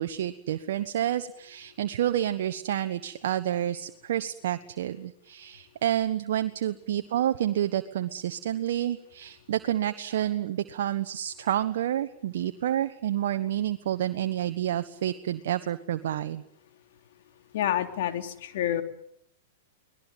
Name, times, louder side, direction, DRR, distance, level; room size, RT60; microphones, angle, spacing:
voice 1, 0.0-16.4, right 11 dB, 65° right, 9 dB, 1.3 m, -29 dB
voice 2, 17.5-18.8, left 11 dB, 65° left, 7 dB, 3.5 m, -28 dB
24.0 x 20.0 x 9.3 m, 0.73 s
hypercardioid pair, 110°, 0 cm